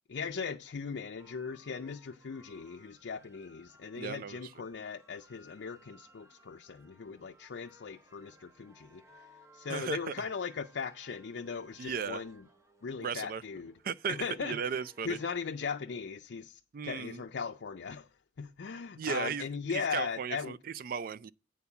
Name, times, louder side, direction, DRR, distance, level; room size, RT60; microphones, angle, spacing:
voice 1, 0.1-12.4 12.8-13.7 14.1-14.6 15.0-20.6, left 5 dB, 75° left, 0.5 m, -39 dB
sound 1, 1.2-15.3, equal, 15° right, 0.8 m, -62 dB
voice 2, 4.0-4.4 9.7-10.1 11.8-12.2 13.0-13.4 13.8-15.2 16.7-17.2 19.0-21.3, right 6 dB, 50° right, 0.4 m, -36 dB
8.4 x 4.6 x 6.9 m
head